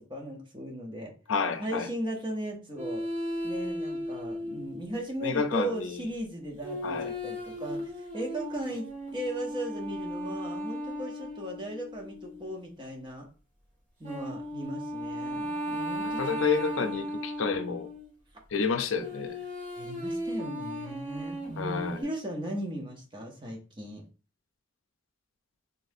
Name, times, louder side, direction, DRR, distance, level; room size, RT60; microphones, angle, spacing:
voice 1, 0.1-1.1 1.6-3.0 3.4-13.3 14.0-16.4 19.7-24.0, right 1 dB, 25° right, 0.9 m, -37 dB
voice 2, 1.3-1.9 5.2-6.0 6.8-7.1 16.2-17.9 18.5-19.4 21.6-22.0, left 5 dB, 85° left, 0.6 m, -29 dB
sound 1, 2.8-5.0 6.6-12.6 14.0-18.1 19.0-22.0, equal, 40° right, 1.7 m, -36 dB
4.1 x 3.5 x 2.7 m
head